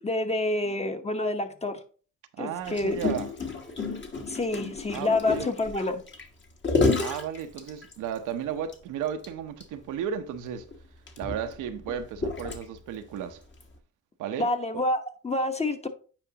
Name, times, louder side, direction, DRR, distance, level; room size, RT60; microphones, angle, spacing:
voice 1, 0.0-1.8 2.4-3.0 4.2-6.0 14.4-15.9, left 2 dB, 20° left, 1.0 m, -28 dB
voice 2, 2.3-3.3 4.9-5.7 7.0-10.7 11.2-13.4 14.2-14.5, right 8 dB, 90° right, 0.9 m, -34 dB
Gurgling, 2.6-8.2 8.7-8.8 9.1-9.3 9.6-9.7 10.5-13.0 13.6-13.8, left 3 dB, 40° left, 1.5 m, -30 dB
8.9 x 5.0 x 2.9 m
cardioid pair, 90°, 30 cm